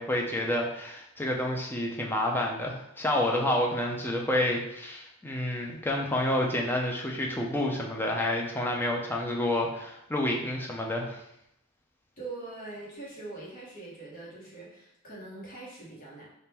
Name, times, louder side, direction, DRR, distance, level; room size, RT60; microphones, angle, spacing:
voice 1, 0.0-11.2, left 1 dB, 10° left, -1 dB, 0.5 m, -29 dB
voice 2, 12.2-16.2, right 2 dB, 40° left, -6 dB, 1.3 m, -42 dB
3.5 x 2.6 x 4.3 m, 0.79 s
head